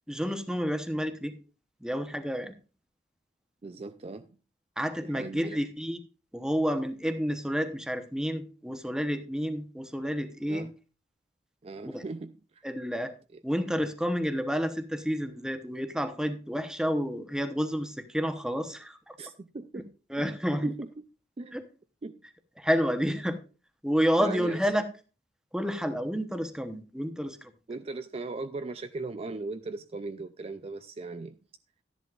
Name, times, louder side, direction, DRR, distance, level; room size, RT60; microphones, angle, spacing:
voice 1, 0.1-1.3 1.8-2.5 4.8-6.0 6.3-10.7 11.8-12.0 12.6-13.1 13.4-19.2 20.1-20.7 21.5-21.6 22.6-23.4 23.8-24.8 25.5-27.5, equal, 5° right, 0.9 m, -30 dB
voice 2, 3.6-4.4 5.0-5.6 10.5-10.7 11.6-12.6 13.3-13.4 19.2-20.4 20.6-21.0 21.4-21.6 22.0-22.2 24.2-24.6 27.7-31.4, right 3 dB, 35° right, 0.4 m, -39 dB
13.5 x 11.0 x 2.5 m
head